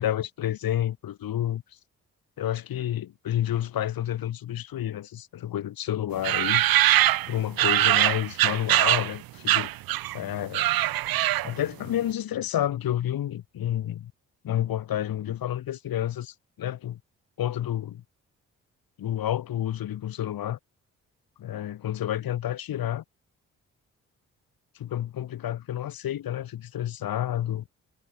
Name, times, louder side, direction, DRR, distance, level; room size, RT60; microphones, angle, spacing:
voice 1, 0.0-1.6 2.4-6.6 7.3-9.7 10.1-10.8 11.4-14.1 14.4-17.0 17.4-18.0 19.0-20.6 21.4-23.0 24.7-27.6, left 11 dB, 65° left, 1.7 m, -30 dB
sound 1, 6.2-9.1 9.5-10.2 10.4-11.7, right 15 dB, 65° right, 0.8 m, -22 dB
hypercardioid pair, 40°, 38 cm